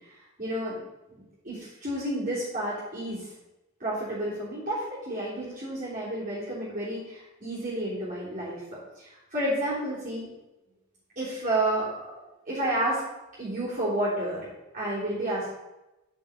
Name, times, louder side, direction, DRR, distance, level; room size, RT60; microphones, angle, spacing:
voice 1, 0.4-0.8 1.1-3.3 3.8-10.3 11.1-12.0 12.4-13.0 13.4-14.4 14.7-15.5, right 1 dB, 40° right, -10 dB, 3.4 m, -30 dB
9.6 x 6.6 x 5.0 m, 0.97 s
head